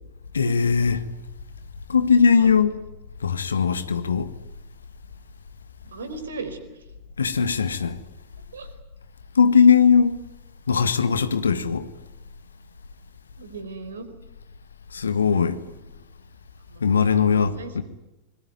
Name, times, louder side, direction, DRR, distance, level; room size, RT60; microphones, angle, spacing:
voice 1, 0.3-1.1 1.9-2.8 3.2-4.3 7.2-8.0 9.3-10.2 10.7-11.9 14.9-15.6 16.8-17.8, left 6 dB, 70° left, 1.7 m, -19 dB
voice 2, 5.9-6.6 8.5-8.7 13.4-14.1 15.6-15.7 16.7-17.7, right 4 dB, 70° right, 4.3 m, -37 dB
25.5 x 22.0 x 9.4 m
figure-of-eight pair, 90°, 0 cm